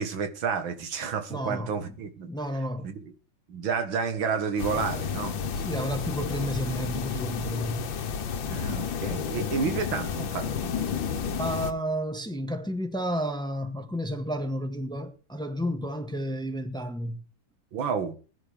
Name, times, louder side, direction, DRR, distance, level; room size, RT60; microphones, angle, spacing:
voice 1, 0.0-2.3 2.8-3.0 3.5-5.4 8.5-10.5 10.8-11.3 17.7-18.2, right 6 dB, 85° right, 2.3 m, -30 dB
voice 2, 1.3-1.7 2.3-2.9 5.6-7.9 11.4-17.2, equal, ahead, 1.4 m, -31 dB
sound 1, 4.6-11.7, left 7 dB, 80° left, 1.9 m, -31 dB
20.5 x 10.5 x 3.5 m
omnidirectional pair, 2.1 m